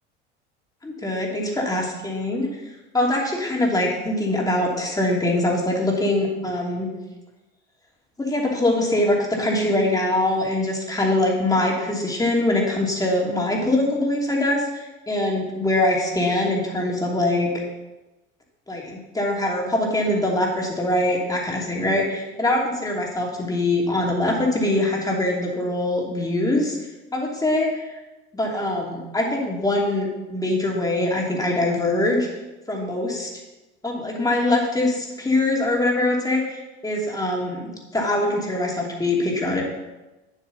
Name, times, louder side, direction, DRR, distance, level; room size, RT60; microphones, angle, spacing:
voice 1, 0.8-2.5 2.9-6.9 8.2-17.5 18.7-26.8 27.1-27.9 28.3-32.3 32.7-33.3 33.8-39.6, left 1 dB, 10° left, -2 dB, 2.7 m, -23 dB
9.1 x 7.5 x 4.1 m, 1.1 s
hypercardioid pair, 80°, 33 cm